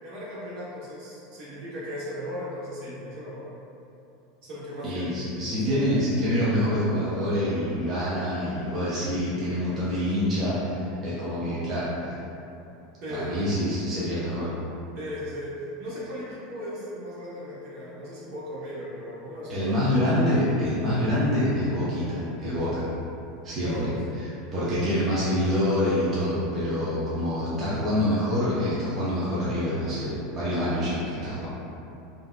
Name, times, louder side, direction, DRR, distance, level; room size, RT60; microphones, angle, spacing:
voice 1, 0.0-3.4 4.4-5.2 5.7-5.8 13.0-13.4 14.9-15.5 15.8-19.9 23.6-23.9, equal, 60° right, -7 dB, 0.9 m, -37 dB
voice 2, 4.8-12.2 13.1-14.5 19.5-22.8 23.4-23.9 24.2-31.5, equal, 30° right, -10 dB, 0.7 m, -26 dB
3.4 x 2.6 x 2.3 m, 2.8 s
supercardioid pair, 135°, 0 cm